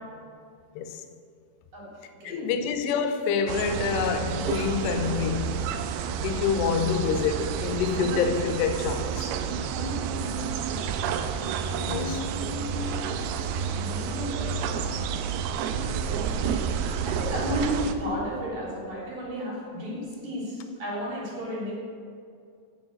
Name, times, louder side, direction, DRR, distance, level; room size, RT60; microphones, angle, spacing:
voice 1, 2.2-5.6 6.2-9.3 11.9-12.2, left 6 dB, 80° left, 7 dB, 2.8 m, -27 dB
sound 1, 3.5-17.9, right 7 dB, 85° right, 2.6 m, -30 dB
voice 2, 9.5-10.9 11.7-14.9 15.6-16.7 17.1-21.7, equal, 55° right, -6 dB, 4.7 m, -34 dB
9.3 x 7.2 x 8.8 m, 2.3 s
omnidirectional pair, 4.9 m